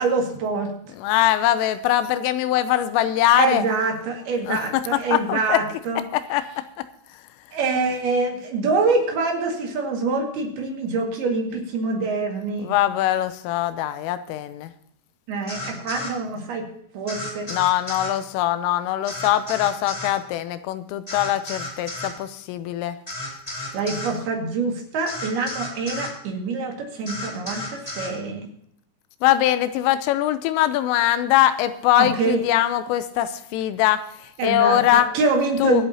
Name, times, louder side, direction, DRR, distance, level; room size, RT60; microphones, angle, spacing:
voice 1, 0.0-0.9 3.4-6.0 7.5-12.7 15.3-16.7 16.9-17.5 23.7-28.5 32.0-32.4 34.4-35.9, right 4 dB, 60° right, 2 dB, 3.5 m, -25 dB
voice 2, 1.0-3.6 4.5-4.6 5.1-5.6 6.1-6.6 12.6-14.7 17.5-23.0 29.2-34.0 34.4-35.1 35.6-35.8, left 13 dB, 85° left, 11 dB, 3.2 m, -22 dB
sound 1, 15.5-16.1 17.1-18.1 19.1-20.2 21.1-22.2 23.1-24.2 25.1-26.1 27.0-28.1, left 2 dB, 15° left, 1.3 m, -33 dB
24.5 x 8.6 x 2.8 m, 0.71 s
omnidirectional pair, 5.8 m